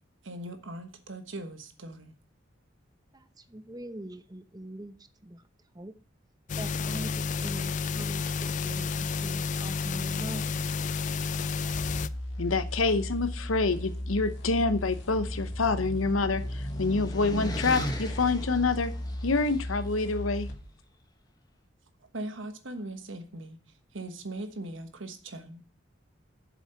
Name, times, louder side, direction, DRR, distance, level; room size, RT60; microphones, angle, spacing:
voice 1, 0.2-2.2 22.1-23.6 23.9-25.6, right 1 dB, 70° right, 9 dB, 1.3 m, -40 dB
voice 2, 3.1-5.5 5.7-5.9 6.6-10.7, right 1 dB, 20° right, 11 dB, 0.7 m, -42 dB
sound 1, 6.5-12.1, left 5 dB, 40° left, 0.3 m, -31 dB
sound 2, 11.7-20.6, left 1 dB, 65° left, 2.2 m, -36 dB
voice 3, 12.4-18.9 19.2-20.5, left 3 dB, 90° left, 13 dB, 0.8 m, -27 dB
sound 3, 14.4-19.6, left 1 dB, 20° left, 1.2 m, -39 dB
7.4 x 7.2 x 5.8 m, 0.40 s
head